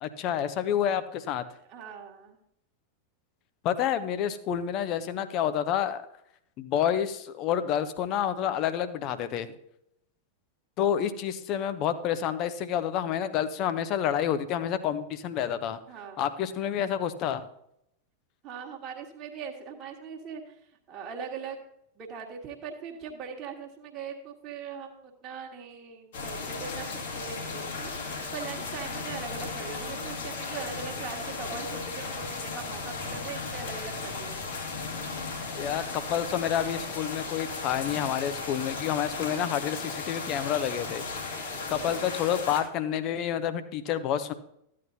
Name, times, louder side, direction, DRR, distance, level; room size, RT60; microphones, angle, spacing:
voice 1, 0.0-1.4 3.6-6.0 6.6-9.5 10.8-15.8 16.2-17.4 35.5-41.0 41.7-44.3, left 9 dB, 40° left, 12 dB, 0.7 m, -29 dB
voice 2, 1.7-2.4 15.9-16.2 18.4-20.6 20.9-21.6 22.0-34.4 41.5-42.0, right 6 dB, 30° right, 0 dB, 1.6 m, -41 dB
sound 1, 26.1-42.6, left 4 dB, 60° left, 2.0 m, -36 dB
13.5 x 8.6 x 2.8 m, 0.75 s
figure-of-eight pair, 90°, 0 cm